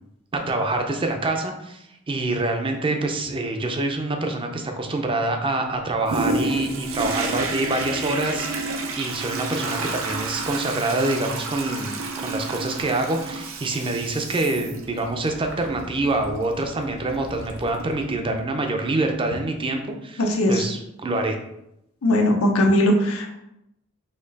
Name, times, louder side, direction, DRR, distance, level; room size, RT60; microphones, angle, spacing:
voice 1, 0.3-21.4, right 2 dB, 25° right, 4 dB, 0.5 m, -26 dB
Toilet flush, 6.1-18.5 19.0-19.1, right 3 dB, 70° right, 0.6 m, -31 dB
voice 2, 20.2-20.6 22.0-23.3, left 1 dB, 90° left, 2 dB, 0.7 m, -19 dB
4.3 x 2.8 x 4.0 m, 0.83 s
head